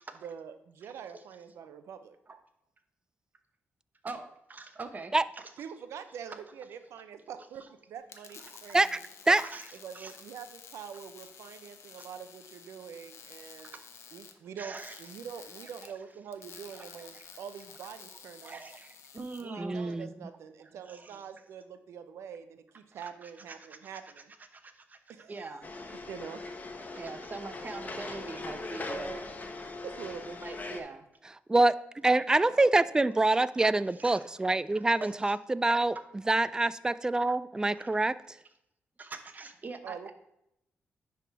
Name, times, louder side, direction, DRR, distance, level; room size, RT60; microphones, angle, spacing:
voice 1, 0.2-2.2 5.6-9.0 9.8-13.7 14.1-18.6 19.4-24.3 25.1-25.6 26.1-26.4 29.8-30.4 39.8-40.1, right 7 dB, 85° right, 10 dB, 0.6 m, -45 dB
voice 2, 4.0-5.6 8.4-8.6 9.4-10.1 12.0-12.1 13.6-13.8 14.6-15.0 15.8-16.0 16.7-17.3 18.4-19.8 20.6-21.2 22.9-23.8 24.5-25.9 26.9-29.3 30.3-31.0 32.5-32.8 33.9-34.3 34.7-35.4 35.9-36.1 37.7-37.9 39.0-40.1, right 3 dB, 40° right, 8 dB, 0.9 m, -44 dB
sound 1, 8.0-19.4, left 7 dB, 75° left, 0.8 m, -51 dB
voice 3, 19.6-20.1 31.5-31.7 32.0-36.0 36.3-38.2, right 2 dB, 15° right, 16 dB, 0.3 m, -25 dB
sound 2, 25.6-30.8, left 2 dB, 35° left, 1.0 m, -40 dB
10.0 x 3.6 x 4.7 m, 0.82 s
cardioid pair, 85°, 5 cm